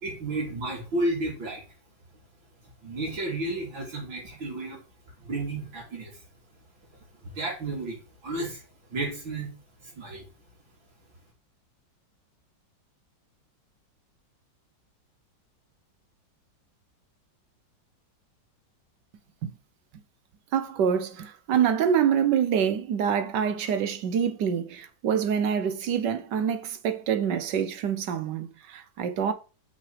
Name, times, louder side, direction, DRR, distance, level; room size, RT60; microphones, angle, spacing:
voice 1, 0.0-1.6 2.8-4.8 5.2-6.2 7.2-8.6 8.9-9.5 9.8-10.2, right 2 dB, 90° right, 3.7 m, -32 dB
voice 2, 20.5-29.3, right 8 dB, 70° right, 1.3 m, -26 dB
6.1 x 5.8 x 4.9 m
omnidirectional pair, 2.0 m